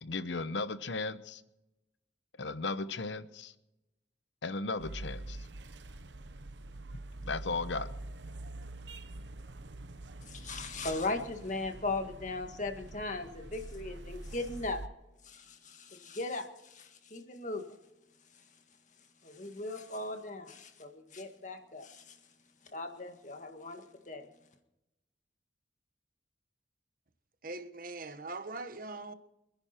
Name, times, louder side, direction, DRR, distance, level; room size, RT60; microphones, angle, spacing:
voice 1, 0.0-1.4 2.4-3.5 4.4-5.4 7.2-7.9, left 3 dB, 80° left, 0.9 m, -36 dB
sound 1, 4.8-14.9, right 2 dB, 80° right, 0.9 m, -45 dB
voice 2, 10.2-14.8 15.2-17.8 19.2-22.2 22.7-24.3, left 2 dB, 45° left, 1.8 m, -38 dB
voice 3, 27.4-29.1, right 3 dB, 50° right, 1.1 m, -41 dB
26.5 x 10.5 x 4.4 m
head